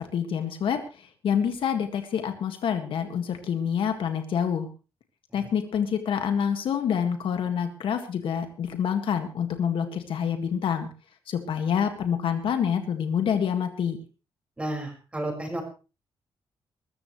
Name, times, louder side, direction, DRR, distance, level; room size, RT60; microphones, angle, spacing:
voice 1, 0.0-4.7 5.3-10.9 11.3-14.0, left 8 dB, 65° left, 7 dB, 1.9 m, -27 dB
voice 2, 14.6-15.6, right 1 dB, 10° right, 1 dB, 5.3 m, -31 dB
21.5 x 14.0 x 3.2 m, 0.33 s
wide cardioid pair, 160°, 10 cm